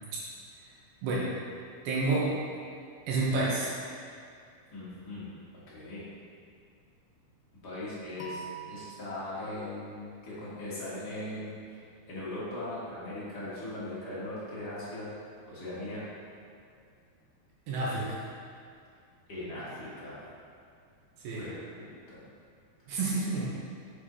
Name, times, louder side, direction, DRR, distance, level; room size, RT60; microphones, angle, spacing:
voice 1, 1.8-2.3 3.1-3.7 17.7-18.2 21.2-21.5 22.9-23.5, right 3 dB, 75° right, -6 dB, 2.7 m, -29 dB
voice 2, 4.7-5.4 5.7-6.0 7.6-11.6 12.1-15.1 15.5-16.0 19.3-20.2 21.4-22.2, left 1 dB, 45° left, -10 dB, 1.3 m, -39 dB
sound 1, 8.2-11.1, right 4 dB, 80° left, 1.9 m, -47 dB
7.3 x 6.6 x 3.0 m, 2.3 s
omnidirectional pair, 4.7 m